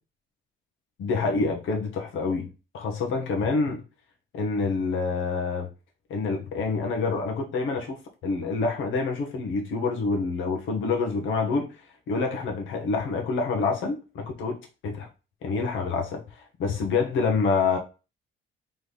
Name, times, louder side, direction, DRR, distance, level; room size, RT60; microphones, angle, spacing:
voice 1, 1.0-3.8 4.3-5.7 6.1-11.7 12.1-14.6 14.8-15.1 15.4-17.8, left 4 dB, 80° left, 1.1 m, -27 dB
4.0 x 3.4 x 3.3 m
cardioid pair, 90°, 20 cm